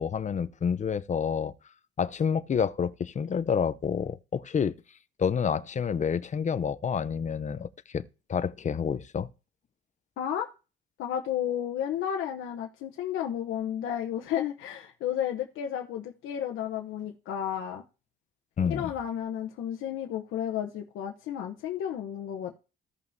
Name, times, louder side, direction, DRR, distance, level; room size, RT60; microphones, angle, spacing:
voice 1, 0.0-1.5 2.0-4.7 5.2-8.0 8.3-9.3 18.6-18.9, left 7 dB, 40° left, 0.6 m, -28 dB
voice 2, 10.2-10.5 11.0-17.8 18.6-22.6, left 10 dB, 85° left, 0.9 m, -32 dB
15.5 x 5.5 x 2.7 m
cardioid pair, 90°, 20 cm